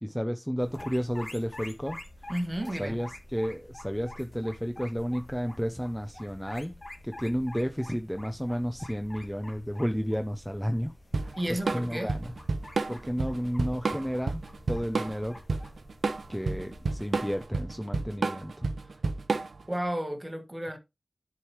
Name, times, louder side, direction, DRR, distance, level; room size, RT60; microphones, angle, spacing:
voice 1, 0.0-2.3 2.8-6.8 7.0-10.9 11.2-12.3 12.9-15.4 16.3-19.0, equal, 5° left, 0.6 m, -32 dB
sound 1, 0.6-17.4, left 1 dB, 35° left, 2.0 m, -47 dB
voice 2, 2.3-3.0 11.4-12.1 19.7-20.8, right 1 dB, 20° right, 1.3 m, -32 dB
Drum kit / Drum, 11.1-19.7, right 3 dB, 80° right, 0.7 m, -30 dB
10.5 x 4.8 x 3.0 m
wide cardioid pair, 90°, 0 cm